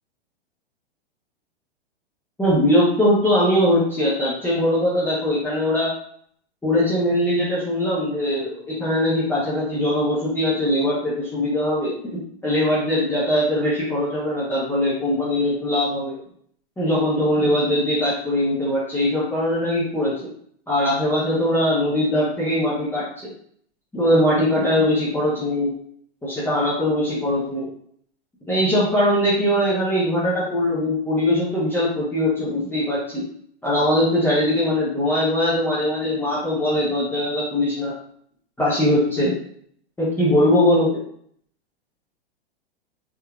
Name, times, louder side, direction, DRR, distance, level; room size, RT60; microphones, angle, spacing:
voice 1, 2.4-5.9 6.6-16.2 16.8-20.3 20.7-23.3 23.9-25.7 26.2-27.7 28.5-33.2 33.6-37.9 38.6-39.3 40.0-41.0, left 1 dB, 5° left, -9 dB, 1.0 m, -21 dB
3.8 x 3.3 x 2.3 m, 0.63 s
hypercardioid pair, 110°, 32 cm